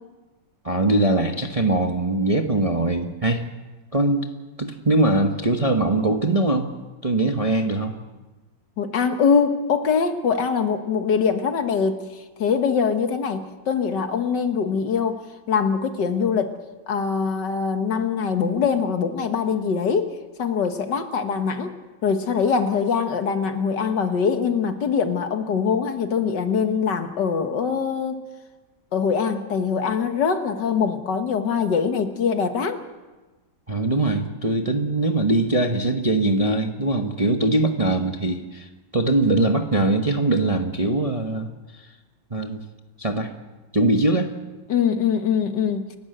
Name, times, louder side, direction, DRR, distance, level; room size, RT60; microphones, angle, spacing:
voice 1, 0.6-3.4 3.9-4.3 4.6-6.7 7.0-7.9 33.7-41.8 42.3-42.6 43.0-43.3 43.7-44.3, right 2 dB, 25° right, 4 dB, 0.9 m, -22 dB
voice 2, 8.8-12.0 12.4-15.2 15.5-16.6 16.9-21.7 22.0-28.2 28.9-32.8 44.7-46.0, left 6 dB, 65° left, 7 dB, 2.0 m, -23 dB
29.5 x 12.0 x 7.9 m, 1.2 s
omnidirectional pair, 2.1 m